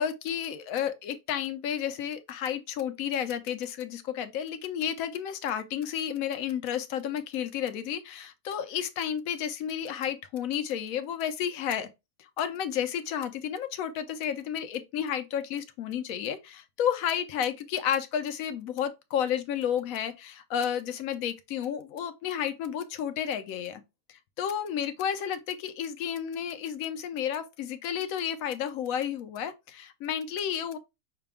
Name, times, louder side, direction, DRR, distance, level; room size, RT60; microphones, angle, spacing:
voice 1, 0.0-11.9 12.4-23.8 24.1-30.8, left 9 dB, 65° left, 1.0 m, -31 dB
5.8 x 2.2 x 3.4 m
omnidirectional pair, 1.8 m